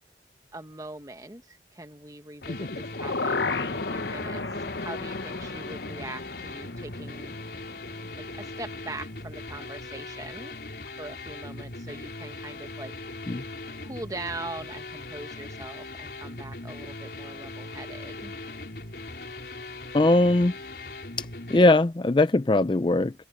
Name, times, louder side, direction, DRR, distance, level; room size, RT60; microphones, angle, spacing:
voice 1, 0.5-7.3 8.2-10.6 11.0-12.9 13.8-18.3, right 2 dB, 20° right, 1.3 m, -41 dB
sound 1, 2.4-8.4 8.8-8.9, left 3 dB, 80° left, 1.2 m, -34 dB
sound 2, 2.4-21.6, left 2 dB, 60° left, 4.6 m, -40 dB
voice 2, 19.9-20.5 21.2-23.1, left 2 dB, 25° left, 0.4 m, -20 dB
head